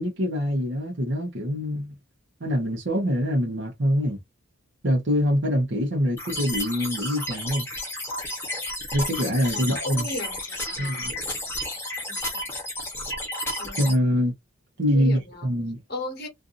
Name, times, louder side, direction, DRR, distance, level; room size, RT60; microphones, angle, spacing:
voice 1, 0.0-1.9 2.4-4.2 4.8-7.7 8.9-10.1 10.8-11.1 13.8-14.3 14.8-15.8, equal, 65° right, 0.8 m, -24 dB
sound 1, 6.2-13.9, left 1 dB, 10° left, 0.9 m, -32 dB
voice 2, 9.5-11.0 12.1-12.2 13.6-14.0 14.9-15.5 15.9-16.3, left 1 dB, 50° left, 1.0 m, -36 dB
2.5 x 2.5 x 2.5 m
head